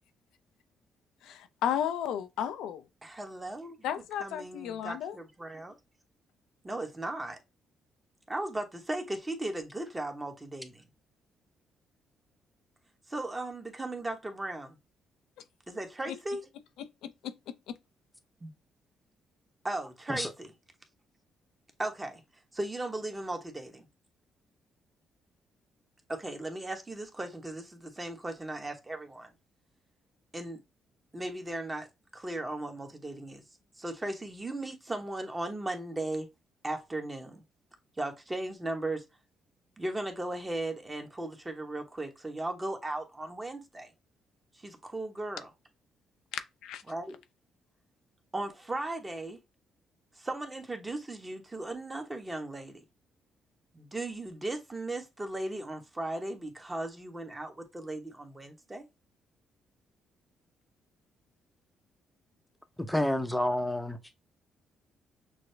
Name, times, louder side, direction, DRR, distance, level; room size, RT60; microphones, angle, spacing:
voice 1, 1.2-2.9 3.8-5.2 15.4-15.5 16.1-16.2 16.8-17.8 46.3-46.8, left 9 dB, 85° left, 0.5 m, -34 dB
voice 2, 3.0-3.8 4.2-5.8 6.6-7.4 8.3-10.8 13.1-14.8 15.7-16.4 18.4-18.5 19.6-20.5 21.8-22.2 22.5-23.8 26.1-29.3 30.3-30.6 31.1-31.9 32.1-33.4 33.8-36.3 36.6-37.4 38.0-39.0 39.8-43.9 44.5-45.5 46.9-47.1 48.3-49.4 50.2-52.8 53.7-58.9, right 2 dB, 20° right, 1.1 m, -37 dB
voice 3, 62.8-64.0, left 1 dB, 5° left, 0.8 m, -29 dB
6.1 x 2.1 x 3.3 m
cardioid pair, 90°, 0 cm